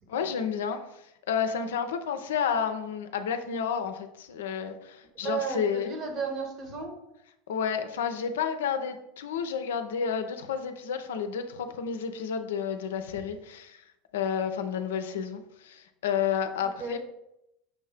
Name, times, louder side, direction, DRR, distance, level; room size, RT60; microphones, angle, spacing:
voice 1, 0.1-0.9 1.3-5.9 7.5-13.8 14.1-17.0, left 7 dB, 75° left, 8 dB, 0.4 m, -31 dB
voice 2, 5.2-6.9 16.6-17.0, right 5 dB, 45° right, 3 dB, 1.2 m, -34 dB
6.0 x 2.7 x 3.3 m, 0.83 s
hypercardioid pair, 85°, 0 cm